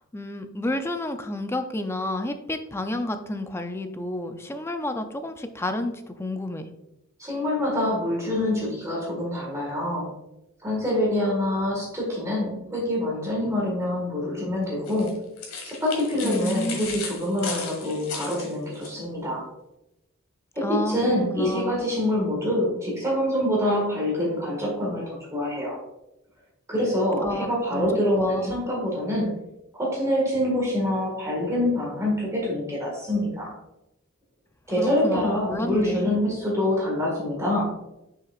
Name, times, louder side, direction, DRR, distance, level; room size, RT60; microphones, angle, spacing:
voice 1, 0.0-6.7 16.2-17.0 20.6-21.9 27.2-28.6 34.8-36.2, left 1 dB, 10° left, 7 dB, 0.4 m, -30 dB
voice 2, 7.2-10.1 10.6-15.2 15.6-19.4 20.6-25.8 26.7-29.3 29.7-33.5 34.7-37.7, left 1 dB, 15° right, -4 dB, 1.7 m, -25 dB
sound 1, 14.9-18.9, left 4 dB, 70° left, 1.6 m, -35 dB
6.7 x 5.8 x 2.4 m, 0.90 s
head